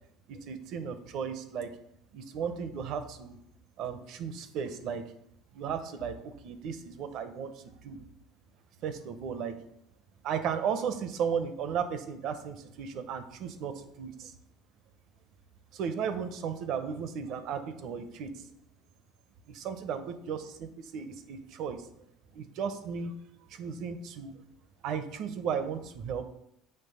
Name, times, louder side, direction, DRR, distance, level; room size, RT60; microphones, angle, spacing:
voice 1, 0.3-1.7 2.1-3.4 3.8-5.0 5.5-8.0 8.8-9.6 10.2-14.3 15.7-18.4 19.5-21.9 22.3-23.1 23.5-24.3 24.8-26.2, right 7 dB, 60° right, 9 dB, 0.7 m, -35 dB
6.7 x 3.2 x 5.4 m, 0.78 s
supercardioid pair, 110°, 0 cm